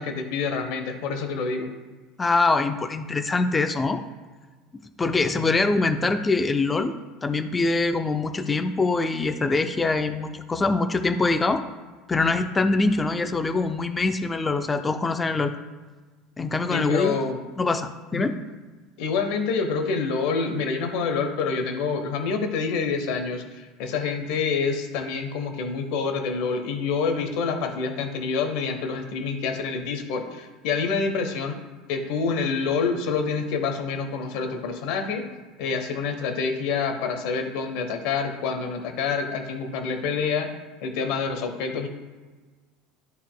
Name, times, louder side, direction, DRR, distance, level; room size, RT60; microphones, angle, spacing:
voice 1, 0.0-1.7 16.7-17.4 18.1-18.3 19.0-31.6 31.9-35.2 35.6-40.5 40.8-41.9, left 5 dB, 70° left, 6 dB, 0.9 m, -27 dB
voice 2, 2.2-4.0 5.0-11.6 12.1-15.5 16.4-17.2 17.6-18.4, left 3 dB, 15° left, 8 dB, 0.4 m, -24 dB
12.0 x 4.1 x 2.2 m, 1.3 s
supercardioid pair, 140°, 0 cm